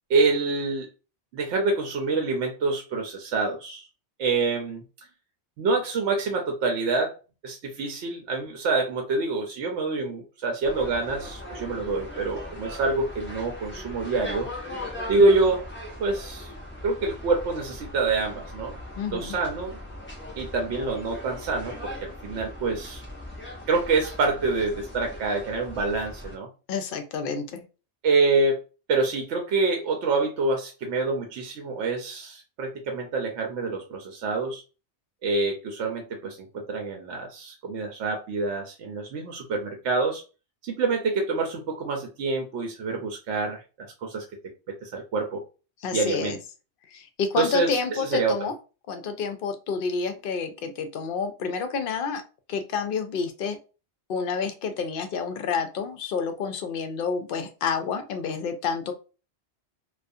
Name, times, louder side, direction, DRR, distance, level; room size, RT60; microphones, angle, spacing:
voice 1, 0.1-0.9 1.3-3.9 4.2-4.8 5.6-7.1 7.4-14.5 15.1-15.6 16.0-16.5 16.8-18.8 19.1-19.8 20.4-23.0 23.7-26.5 28.0-28.6 28.9-34.6 35.2-40.2 40.6-43.6 44.0-44.2 44.7-45.4 45.9-46.4 47.4-48.4, right 3 dB, 80° right, 0.9 m, -26 dB
sound 1, 10.6-26.4, left 1 dB, 15° left, 0.5 m, -39 dB
voice 2, 19.0-19.4 26.7-27.7 45.8-46.4 46.9-48.5 48.9-52.2 52.5-53.6 54.1-58.9, left 5 dB, 60° left, 0.6 m, -29 dB
2.3 x 2.3 x 2.6 m
omnidirectional pair, 1.2 m